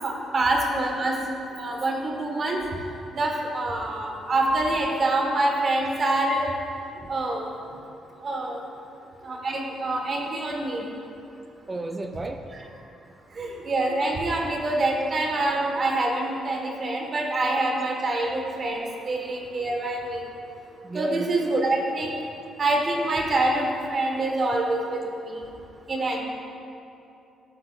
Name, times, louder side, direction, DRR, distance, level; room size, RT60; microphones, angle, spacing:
voice 1, 0.0-1.1 1.6-2.6 3.1-6.5 7.1-7.5 8.2-8.6 9.2-10.8 13.4-20.3 20.9-22.1 22.6-25.0 25.3-25.4 25.9-26.2, right 2 dB, 45° right, 1 dB, 1.3 m, -25 dB
voice 2, 11.7-12.7 20.8-21.3, right 2 dB, 25° right, 5 dB, 0.4 m, -33 dB
11.5 x 7.7 x 2.4 m, 2.7 s
cardioid pair, 90°, 0 cm